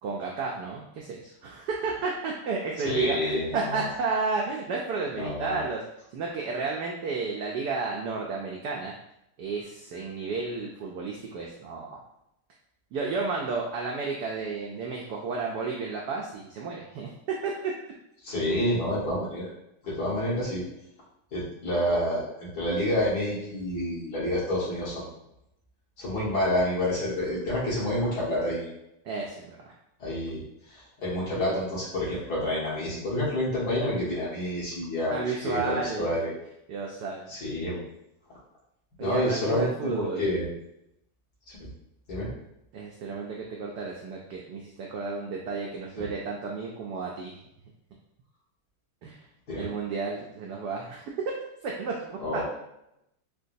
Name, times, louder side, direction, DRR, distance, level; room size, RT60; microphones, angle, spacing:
voice 1, 0.0-5.8 6.1-8.9 9.4-12.0 12.9-17.1 17.4-17.7 29.0-29.7 35.1-36.1 36.7-37.3 39.0-40.3 42.7-47.4 49.0-49.3 49.6-51.0 51.6-52.4, right 4 dB, 80° right, -2 dB, 0.9 m, -32 dB
voice 2, 2.8-3.9 5.1-5.6 18.2-19.5 19.8-20.6 21.3-25.1 26.0-28.7 30.0-30.4 30.7-36.3 37.3-37.8 39.0-40.5 41.6-41.7 42.1-42.3 46.0-46.1 49.5-49.7 52.2-52.4, left 1 dB, 55° left, -8 dB, 1.8 m, -28 dB
4.8 x 2.2 x 2.6 m, 0.81 s
omnidirectional pair, 2.3 m